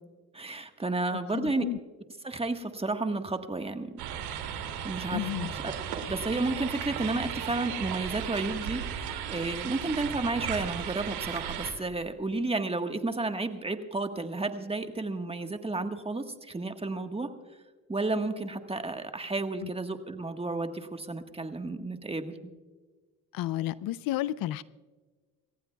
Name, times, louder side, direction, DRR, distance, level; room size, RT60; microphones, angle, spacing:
voice 1, 0.3-1.7 2.2-3.9 4.8-5.7 6.0-17.3 17.9-22.3, right 2 dB, 15° right, 6 dB, 1.4 m, -32 dB
voice 2, 1.3-1.8 5.1-5.5 23.3-24.6, left 14 dB, 65° left, 18 dB, 0.5 m, -31 dB
sound 1, 4.0-11.7, right 9 dB, 80° right, 2.7 m, -35 dB
27.0 x 15.0 x 2.3 m, 1.4 s
supercardioid pair, 80°, 37 cm